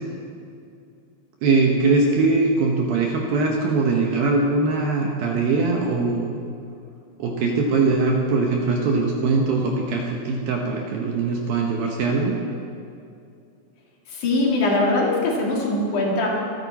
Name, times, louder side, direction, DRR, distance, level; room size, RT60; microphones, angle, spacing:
voice 1, 1.4-6.4 7.2-12.4, right 3 dB, 75° right, 0 dB, 2.2 m, -21 dB
voice 2, 14.1-16.3, left 2 dB, 50° left, -2 dB, 2.9 m, -21 dB
24.5 x 9.6 x 4.2 m, 2.5 s
omnidirectional pair, 5.6 m